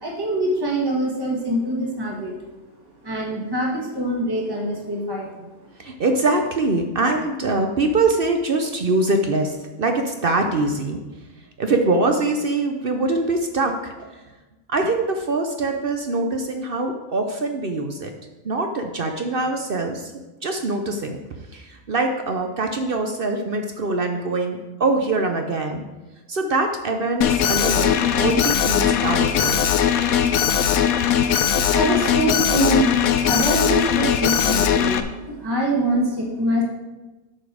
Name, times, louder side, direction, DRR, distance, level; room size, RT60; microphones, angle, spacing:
voice 1, 0.0-2.3 3.0-5.5 31.7-35.0 35.4-36.6, right 1 dB, 15° right, -2 dB, 1.5 m, -24 dB
voice 2, 5.8-11.0 11.6-14.1 14.7-18.1 18.4-20.1 20.4-21.2 21.5-25.8 26.3-29.6, right 2 dB, 50° right, 4 dB, 0.8 m, -23 dB
Alarm, 27.2-35.0, left 8 dB, 75° left, 1.1 m, -19 dB
8.4 x 5.3 x 6.1 m, 1.1 s
omnidirectional pair, 1.5 m